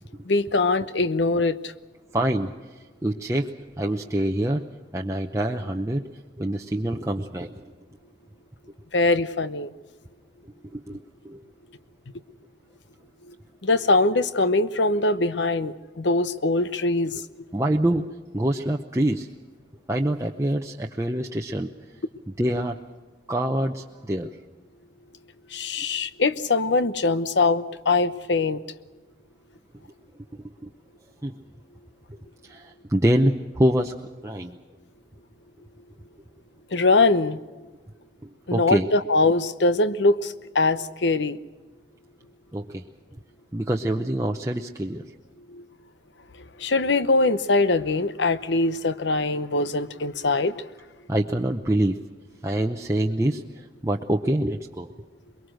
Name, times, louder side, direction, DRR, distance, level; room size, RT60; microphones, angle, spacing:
voice 1, 0.3-1.7 8.9-9.7 13.3-13.4 13.6-17.2 25.5-28.6 36.7-37.4 38.5-41.4 45.5-45.6 46.6-50.6, left 3 dB, 80° left, 13 dB, 0.9 m, -22 dB
voice 2, 2.1-4.7 4.9-6.1 6.4-7.6 10.4-11.4 17.5-19.3 19.9-22.0 22.4-22.8 23.3-24.4 30.6-30.7 31.2-31.3 32.4-34.0 34.2-34.6 38.2-38.9 42.5-42.9 43.5-45.1 51.1-52.0 52.4-54.9, right 1 dB, 15° right, 2 dB, 0.7 m, -26 dB
23.0 x 22.0 x 6.4 m, 1.3 s
head